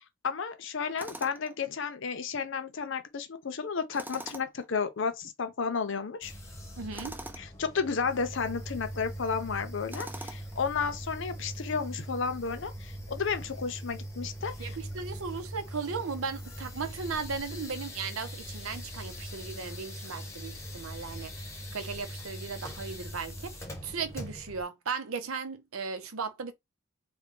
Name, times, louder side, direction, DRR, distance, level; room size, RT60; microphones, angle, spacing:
voice 1, 0.0-6.3 7.4-14.8, left 5 dB, 65° left, 0.6 m, -32 dB
Tools, 1.0-1.5 3.9-4.7 6.9-7.5 9.9-10.6, right 1 dB, 10° right, 0.3 m, -43 dB
sound 1, 6.2-24.6, equal, 15° left, 0.8 m, -41 dB
voice 2, 6.8-7.2 14.6-26.5, right 5 dB, 90° right, 0.7 m, -37 dB
3.4 x 2.2 x 3.7 m
head